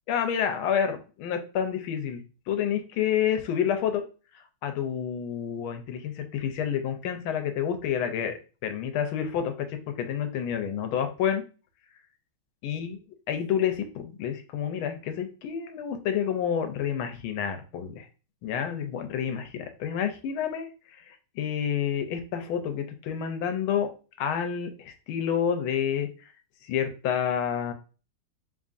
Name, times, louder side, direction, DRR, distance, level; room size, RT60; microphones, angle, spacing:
voice 1, 0.1-4.0 4.3-11.4 12.6-13.0 13.3-18.1 18.4-23.9 24.2-26.3 26.6-27.7, left 8 dB, 85° left, 7 dB, 1.4 m, -29 dB
3.9 x 3.6 x 2.5 m, 0.35 s
omnidirectional pair, 2.3 m